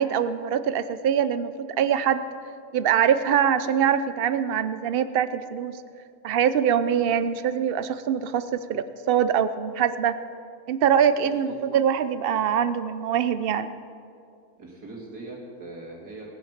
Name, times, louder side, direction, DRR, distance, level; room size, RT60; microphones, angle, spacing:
voice 1, 0.0-2.2 2.7-5.8 6.2-10.2 10.7-13.7, right 8 dB, 60° right, 13 dB, 0.6 m, -23 dB
voice 2, 11.1-11.6 14.6-16.3, right 2 dB, 90° right, -2 dB, 3.3 m, -41 dB
19.0 x 10.5 x 5.8 m, 2.4 s
omnidirectional pair, 1.6 m